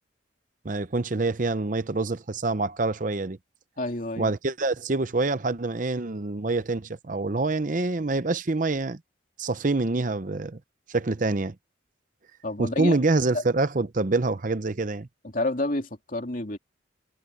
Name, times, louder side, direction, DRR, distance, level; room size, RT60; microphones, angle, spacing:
voice 1, 0.6-3.4 4.2-9.0 9.4-10.6 10.9-11.5 12.6-15.1, right 3 dB, 40° right, 0.7 m, -26 dB
voice 2, 3.8-4.3 12.4-13.0 13.3-13.4 15.3-16.6, left 2 dB, 45° left, 3.0 m, -29 dB
head